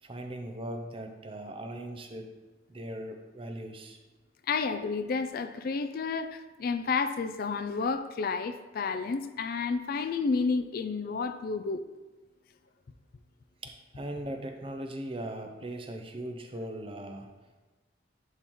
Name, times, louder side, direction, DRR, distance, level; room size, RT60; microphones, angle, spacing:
voice 1, 0.0-2.3 2.7-4.0 13.6-17.3, right 1 dB, 30° right, 5 dB, 0.6 m, -39 dB
voice 2, 4.5-11.8, left 4 dB, 50° left, 10 dB, 0.4 m, -31 dB
11.0 x 3.7 x 3.1 m, 1.2 s
head